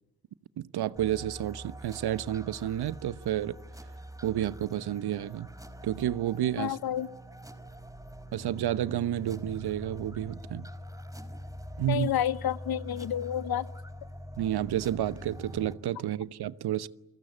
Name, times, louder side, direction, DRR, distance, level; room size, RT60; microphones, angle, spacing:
voice 1, 0.6-3.5 4.2-5.5 5.8-6.8 8.3-10.7 11.8-12.1 14.4-16.9, right 12 dB, 50° right, 1.0 m, -30 dB
sound 1, 1.0-15.7, equal, 5° right, 4.6 m, -44 dB
voice 2, 6.6-7.1 11.9-13.7, left 10 dB, 50° left, 1.1 m, -30 dB
29.5 x 23.0 x 8.5 m
hypercardioid pair, 45°, 48 cm